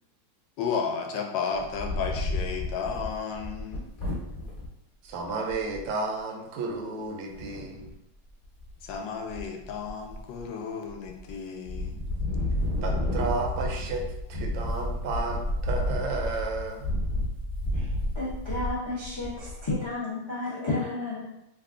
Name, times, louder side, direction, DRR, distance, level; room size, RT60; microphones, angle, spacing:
voice 1, 0.6-3.9 8.8-12.0, left 6 dB, 75° left, 3 dB, 1.2 m, -33 dB
Wind, 1.5-4.7 5.2-5.3 5.5-5.9 7.3-7.9 8.4-8.9 9.3-10.4 10.9-11.3 11.6-19.9, left 1 dB, 20° left, 0.8 m, -31 dB
voice 2, 5.0-7.9 12.8-16.9, right 3 dB, 80° right, 1 dB, 1.3 m, -32 dB
voice 3, 17.7-21.3, left 2 dB, 40° left, -7 dB, 0.3 m, -32 dB
3.4 x 2.3 x 3.6 m, 0.85 s
omnidirectional pair, 2.1 m